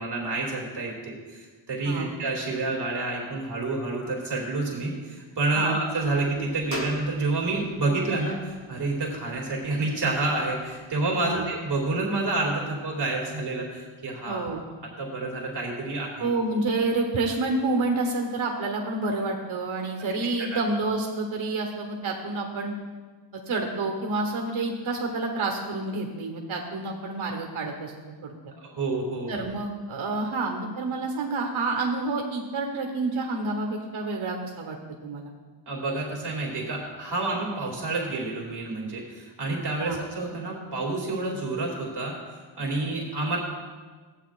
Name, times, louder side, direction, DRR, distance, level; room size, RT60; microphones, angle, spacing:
voice 1, 0.0-14.5 15.0-16.3 20.4-20.6 28.6-29.3 35.7-42.1 42.6-43.4, right 2 dB, 55° right, -2 dB, 2.3 m, -29 dB
sound 1, 5.9-12.0, left 2 dB, 30° left, 1.0 m, -43 dB
voice 2, 14.2-14.6 16.2-22.7 23.5-27.9 28.2-28.3 29.3-35.3 39.8-40.0, right 3 dB, 80° right, 1 dB, 1.2 m, -28 dB
14.5 x 8.7 x 2.4 m, 1.4 s
wide cardioid pair, 105°, 48 cm